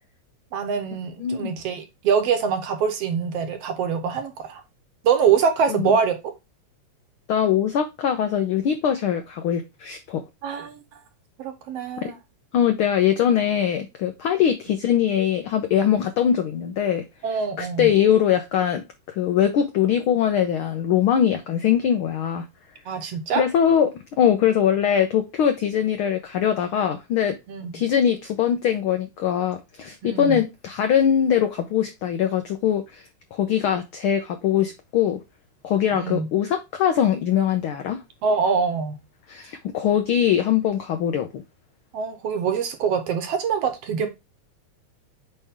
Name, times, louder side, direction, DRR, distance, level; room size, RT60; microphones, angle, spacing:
voice 1, 0.5-4.6 5.0-6.2 10.4-10.8 11.4-12.2 17.2-17.9 22.9-23.4 27.5-27.8 30.0-30.4 35.9-36.3 38.2-39.0 41.9-44.1, right 6 dB, 65° right, 1.8 m, -24 dB
voice 2, 1.2-1.5 5.7-5.9 7.3-10.2 12.0-12.1 12.5-17.0 17.6-22.4 23.4-23.9 24.2-27.3 27.7-33.0 33.3-35.2 35.6-38.0 39.3-41.4, left 9 dB, 90° left, 1.1 m, -22 dB
8.7 x 3.3 x 3.5 m
omnidirectional pair, 3.4 m